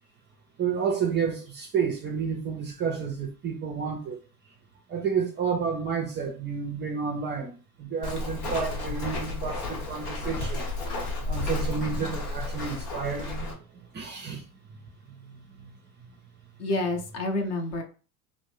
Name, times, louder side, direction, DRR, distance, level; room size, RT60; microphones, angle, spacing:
voice 1, 0.6-4.2 4.9-10.7 11.3-13.5 13.9-14.5, right 6 dB, 25° right, 0.4 m, -30 dB
Walk footsteps, 8.0-13.5, left 2 dB, 75° left, 1.0 m, -32 dB
voice 2, 16.6-17.8, left 2 dB, 35° left, 0.6 m, -28 dB
2.5 x 2.1 x 3.1 m
hypercardioid pair, 80°, 46 cm